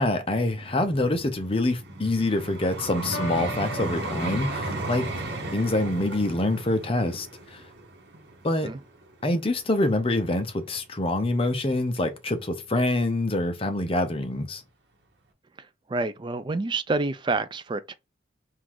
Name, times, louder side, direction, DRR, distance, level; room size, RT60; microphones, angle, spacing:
voice 1, 0.0-5.1 5.5-7.6 8.4-8.7 9.2-14.6, left 2 dB, 30° left, 0.6 m, -26 dB
Vehicle, 0.6-9.7 10.3-10.5, right 2 dB, 60° right, 1.0 m, -35 dB
Piano, 3.1-5.1, left 2 dB, 80° left, 0.8 m, -39 dB
voice 2, 15.6-17.9, right 3 dB, 25° right, 0.3 m, -28 dB
3.7 x 2.5 x 4.5 m
head